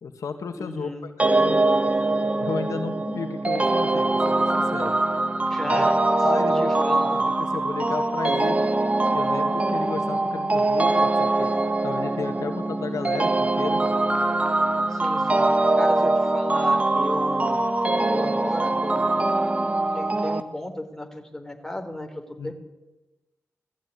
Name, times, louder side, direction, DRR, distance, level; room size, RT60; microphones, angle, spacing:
voice 1, 0.0-1.6 2.4-5.0 5.7-8.7 9.1-11.5 11.8-13.8 22.4-22.5, left 5 dB, 90° left, 7 dB, 1.9 m, -33 dB
voice 2, 0.5-1.1 5.5-7.2 14.8-15.5 15.8-17.6 18.1-19.3 19.9-22.5, left 1 dB, 10° left, 5 dB, 3.4 m, -35 dB
sound 1, 1.2-20.4, right 2 dB, 25° right, 1.5 m, -23 dB
19.0 x 14.5 x 9.5 m, 1.1 s
wide cardioid pair, 80°, 5 cm